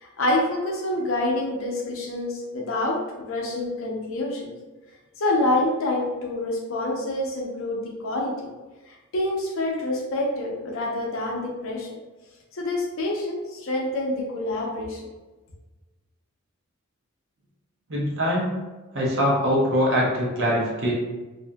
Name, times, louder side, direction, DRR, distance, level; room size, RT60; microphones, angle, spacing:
voice 1, 0.0-4.5 5.2-8.5 8.9-11.9 12.5-15.0, left 1 dB, 70° left, -1 dB, 0.6 m, -27 dB
voice 2, 17.9-18.6 18.9-20.9, equal, 60° right, -4 dB, 0.7 m, -23 dB
2.6 x 2.6 x 2.2 m, 1.2 s
head